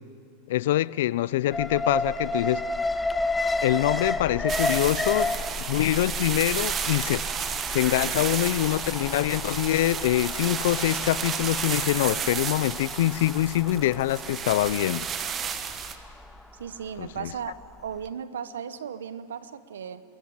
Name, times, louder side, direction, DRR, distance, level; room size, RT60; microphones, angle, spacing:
voice 1, 0.5-2.6 3.6-5.3 5.7-7.2 7.7-15.1 17.0-17.3, left 14 dB, 70° left, 0.5 m, -24 dB
Alarm, 1.5-17.6 17.9-18.0, left 2 dB, 10° left, 1.0 m, -32 dB
sound 1, 4.5-16.0, right 7 dB, 30° right, 1.5 m, -32 dB
voice 2, 16.5-20.0, right 8 dB, 85° right, 1.1 m, -36 dB
28.0 x 14.0 x 8.9 m
hypercardioid pair, 110°, 0 cm